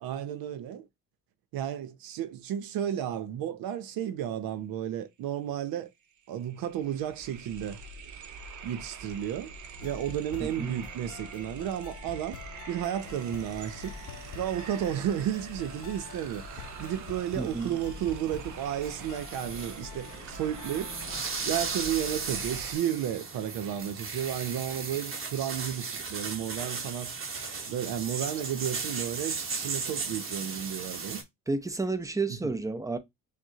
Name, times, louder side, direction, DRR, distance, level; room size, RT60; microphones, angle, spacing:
voice 1, 0.0-0.9 1.5-5.9 6.3-7.8 8.6-9.5 9.8-12.4 12.7-13.9 14.3-21.0 21.4-27.1 27.7-31.2 32.4-32.5, right 10 dB, 90° right, 0.7 m, -33 dB
sound 1, 5.8-5.9 6.1-22.8, right 3 dB, 55° right, 0.7 m, -45 dB
sound 2, 9.8-21.2, left 9 dB, 55° left, 0.5 m, -48 dB
voice 2, 10.4-10.8 17.4-17.8 31.5-33.0, right 3 dB, 10° right, 0.5 m, -31 dB
sound 3, 13.0-31.2, right 4 dB, 35° right, 1.1 m, -38 dB
6.0 x 2.2 x 2.7 m
cardioid pair, 95°, 35 cm